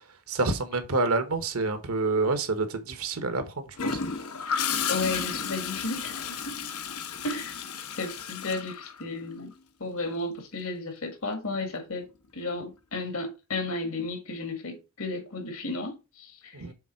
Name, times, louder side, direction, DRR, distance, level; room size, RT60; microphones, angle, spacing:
voice 1, 0.3-3.4 3.8-4.0 16.5-16.7, right 3 dB, 80° right, 1.2 m, -27 dB
Gurgling / Toilet flush, 3.8-9.5 11.5-11.8, left 6 dB, 85° left, 1.0 m, -33 dB
voice 2, 4.9-6.5 7.2-7.6 8.0-9.5 9.8-12.1 12.3-16.6, left 3 dB, 70° left, 1.8 m, -33 dB
7.0 x 3.7 x 4.4 m
head